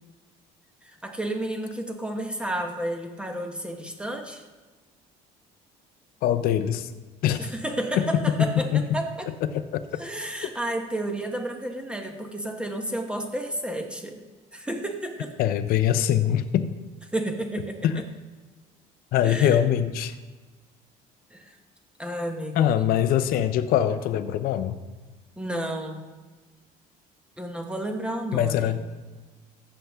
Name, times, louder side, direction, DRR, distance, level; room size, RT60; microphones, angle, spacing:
voice 1, 0.8-4.4 7.4-9.3 10.0-14.2 14.5-15.3 17.1-17.9 19.2-19.6 21.3-21.6 22.0-22.8 25.4-26.1 27.4-28.8, right 1 dB, 5° right, 3 dB, 1.1 m, -31 dB
voice 2, 6.2-6.9 7.2-7.5 8.2-8.8 9.5-10.0 15.4-16.7 17.8-18.0 19.1-20.1 22.6-24.8 28.3-28.8, left 10 dB, 65° left, 11 dB, 0.6 m, -23 dB
15.0 x 7.1 x 3.5 m, 1.3 s
cardioid pair, 125°, 16 cm